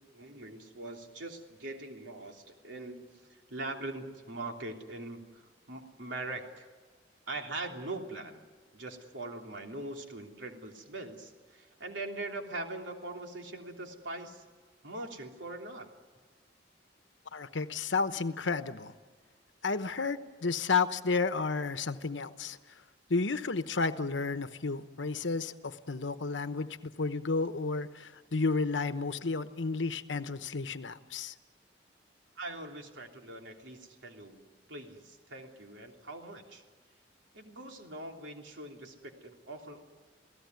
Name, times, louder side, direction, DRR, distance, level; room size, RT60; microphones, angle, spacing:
voice 1, 0.0-3.2 3.5-5.2 5.7-6.7 7.3-8.4 8.7-14.4 14.8-15.9 32.4-34.4 34.7-36.6 37.3-39.8, right 2 dB, 85° right, 2 dB, 3.3 m, -42 dB
voice 2, 17.3-18.9 19.6-22.6 23.1-31.3, left 4 dB, 90° left, 10 dB, 1.0 m, -32 dB
28.5 x 17.5 x 9.5 m, 1.4 s
head